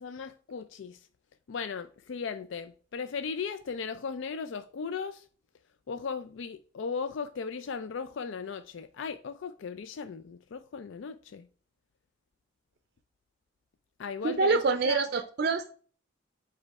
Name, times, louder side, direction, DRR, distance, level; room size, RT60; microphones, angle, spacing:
voice 1, 0.0-1.1 1.5-5.3 5.9-11.5 14.0-15.0, left 5 dB, 70° left, 0.4 m, -37 dB
voice 2, 14.2-15.7, right 4 dB, 50° right, 0.5 m, -26 dB
5.2 x 4.3 x 4.7 m
head